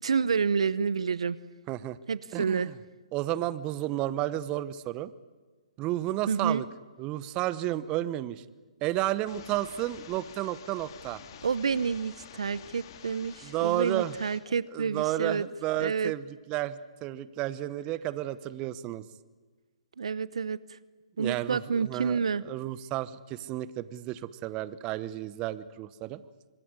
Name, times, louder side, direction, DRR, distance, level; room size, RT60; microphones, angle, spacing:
voice 1, 0.0-1.4 2.1-2.7 6.3-6.6 11.4-15.5 15.8-16.1 20.0-20.8 21.2-22.4, right 6 dB, 70° right, 18 dB, 0.9 m, -29 dB
voice 2, 1.7-2.0 2.3-2.7 3.1-5.1 5.8-6.7 7.0-8.4 8.8-11.2 13.4-14.1 14.7-19.0 21.2-22.2 22.4-26.2, right 14 dB, 25° right, 16 dB, 1.0 m, -32 dB
sound 1, 9.3-14.4, left 8 dB, 45° left, 2.9 m, -49 dB
26.0 x 21.5 x 9.7 m, 1.3 s
figure-of-eight pair, 135°, 3 cm